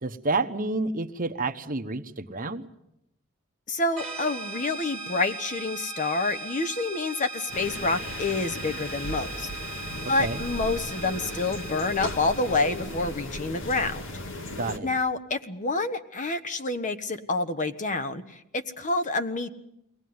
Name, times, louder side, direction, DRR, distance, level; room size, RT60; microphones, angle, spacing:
voice 1, 0.0-2.7 10.2-10.4 14.6-14.9, right 3 dB, 40° right, 8 dB, 1.1 m, -29 dB
voice 2, 3.7-9.5 10.1-14.0 14.8-19.5, left 3 dB, 35° left, 9 dB, 1.2 m, -28 dB
sound 1, 4.0-13.4, right 3 dB, ahead, 1.8 m, -39 dB
sound 2, 7.5-14.8, left 1 dB, 65° left, 2.0 m, -36 dB
23.0 x 18.0 x 9.5 m, 0.83 s
head